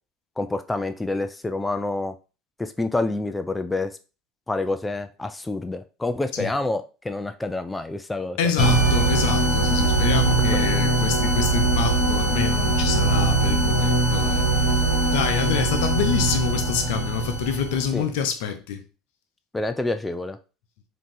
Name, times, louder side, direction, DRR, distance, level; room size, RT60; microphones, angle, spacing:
voice 1, 0.4-2.1 2.6-3.9 4.5-8.4 10.4-10.6 17.9-18.1 19.5-20.4, left 2 dB, 15° left, 0.4 m, -27 dB
voice 2, 8.4-14.8 15.1-18.8, left 7 dB, 75° left, 0.7 m, -27 dB
sound 1, 8.6-17.9, right 2 dB, 35° left, 2.3 m, -21 dB
3.6 x 2.8 x 3.8 m
hypercardioid pair, 80°, 0 cm